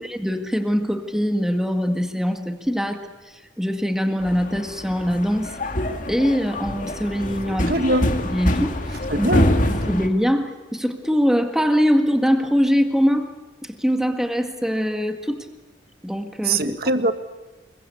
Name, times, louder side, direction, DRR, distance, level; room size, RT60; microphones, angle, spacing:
voice 1, 0.0-3.1 3.6-5.5 6.1-7.7 8.2-8.7 9.2-9.3 9.9-13.3 13.6-15.5 16.0-16.8, equal, 5° right, 1.8 m, -22 dB
sound 1, 4.2-10.1, left 1 dB, 45° left, 2.2 m, -25 dB
voice 2, 7.5-8.1 9.1-9.5 16.4-17.1, right 2 dB, 55° right, 1.6 m, -22 dB
28.0 x 22.5 x 8.4 m
head